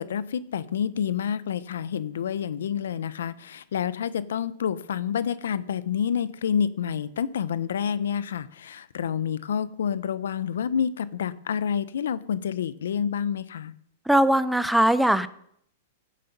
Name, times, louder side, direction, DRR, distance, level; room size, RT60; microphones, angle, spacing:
voice 1, 0.0-13.7, left 8 dB, 85° left, 16 dB, 0.7 m, -28 dB
voice 2, 14.1-15.3, right 1 dB, ahead, 14 dB, 0.6 m, -20 dB
15.0 x 7.6 x 5.4 m, 0.69 s
hypercardioid pair, 135°, 0 cm